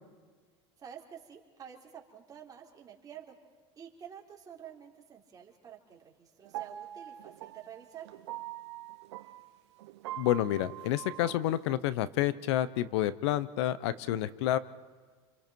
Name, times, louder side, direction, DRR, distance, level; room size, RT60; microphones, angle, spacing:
voice 1, 0.8-3.4 3.8-8.1, right 9 dB, 25° right, -1 dB, 3.7 m, -49 dB
sound 1, 6.4-11.7, right 14 dB, 85° right, 0.9 m, -44 dB
voice 2, 10.2-14.6, left 13 dB, 80° left, 16 dB, 0.9 m, -29 dB
29.5 x 24.0 x 4.6 m, 1.5 s
supercardioid pair, 125°, 14 cm